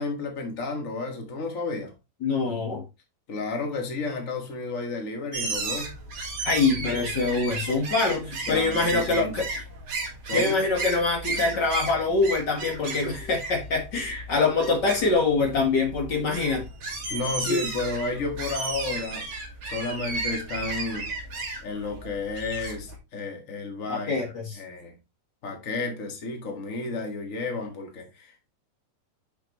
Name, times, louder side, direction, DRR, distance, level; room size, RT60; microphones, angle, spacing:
voice 1, 0.0-1.9 3.3-5.9 8.5-9.4 10.3-10.6 17.1-19.3 19.6-21.1 21.6-24.2 24.5-24.9 25.4-28.5, left 3 dB, 85° left, 0.7 m, -32 dB
voice 2, 2.2-2.8 6.4-9.4 10.3-16.6 17.5-17.6 23.9-24.6, left 3 dB, 55° left, 1.2 m, -24 dB
sound 1, 5.3-23.0, right 3 dB, 45° right, 2.9 m, -34 dB
8.2 x 6.4 x 3.1 m
omnidirectional pair, 4.6 m